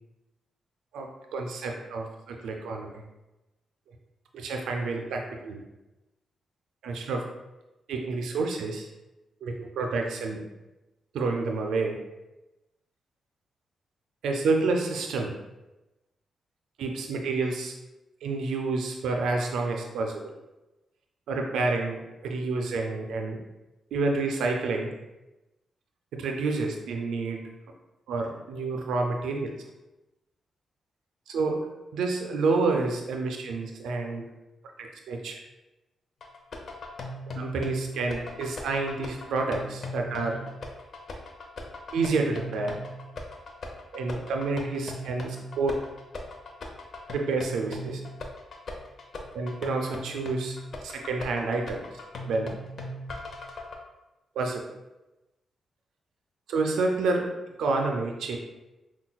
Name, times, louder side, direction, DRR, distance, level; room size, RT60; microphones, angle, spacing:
voice 1, 0.9-3.0 4.3-5.6 6.8-7.2 7.9-8.9 9.4-10.4 11.1-12.0 14.2-15.3 16.8-17.7 18.2-20.3 21.3-23.4 23.9-24.9 26.1-27.4 28.1-29.5 31.3-34.2 34.8-35.4 37.4-40.4 41.9-42.8 43.9-45.8 47.1-48.0 49.3-50.6 50.8-51.8 52.2-52.5 54.4-54.6 56.5-57.3 57.6-58.4, right 3 dB, 85° right, 2 dB, 0.3 m, -29 dB
sound 1, 36.2-53.8, left 1 dB, 60° left, 0.6 m, -39 dB
5.6 x 2.2 x 2.2 m, 1.0 s
cardioid pair, 65°, 0 cm